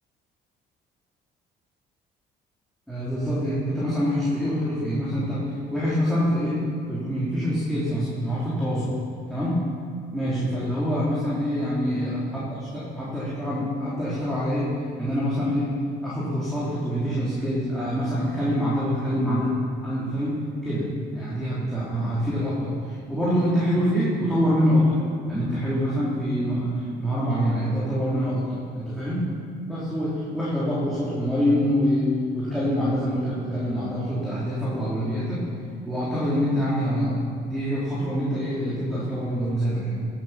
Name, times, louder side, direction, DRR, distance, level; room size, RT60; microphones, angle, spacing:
voice 1, 2.9-6.6 6.9-8.9 9.3-9.6 10.1-14.7 15.0-15.8 16.0-19.6 19.8-20.9 21.1-25.0 25.3-29.3 29.7-35.5 35.8-40.0, equal, ahead, -9 dB, 3.3 m, -25 dB
16.5 x 8.0 x 5.8 m, 2.3 s
cardioid pair, 110°, 17 cm